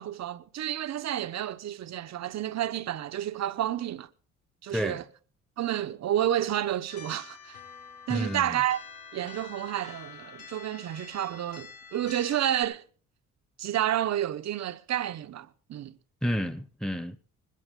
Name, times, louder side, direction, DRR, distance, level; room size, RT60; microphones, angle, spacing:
voice 1, 0.0-4.1 4.6-5.0 5.6-7.6 8.1-8.8 9.1-12.8 13.6-16.0, right 11 dB, 60° right, 0.9 m, -30 dB
voice 2, 4.7-5.0 8.1-8.6 16.2-17.2, equal, ahead, 1.1 m, -30 dB
sound 1, 6.9-12.6, left 6 dB, 75° left, 6.9 m, -47 dB
20.0 x 14.0 x 3.7 m
cardioid pair, 90°, 30 cm